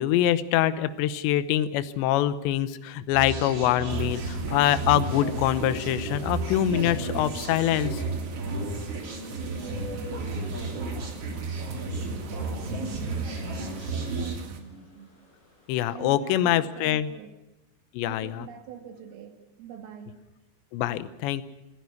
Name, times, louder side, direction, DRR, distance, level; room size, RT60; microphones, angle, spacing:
voice 1, 0.0-8.0 15.7-17.1 17.9-18.5 20.7-21.4, left 12 dB, 75° left, 13 dB, 2.9 m, -24 dB
sound 1, 3.1-14.4, right 3 dB, 35° right, 3.2 m, -33 dB
sound 2, 3.4-15.7, left 1 dB, 50° left, 8.6 m, -48 dB
sound 3, 3.9-14.6, right 4 dB, 55° right, 3.2 m, -43 dB
voice 2, 9.4-15.1 15.7-17.3 18.1-20.2, right 9 dB, 80° right, 4 dB, 4.9 m, -45 dB
28.5 x 11.0 x 9.7 m, 0.95 s
omnidirectional pair, 5.8 m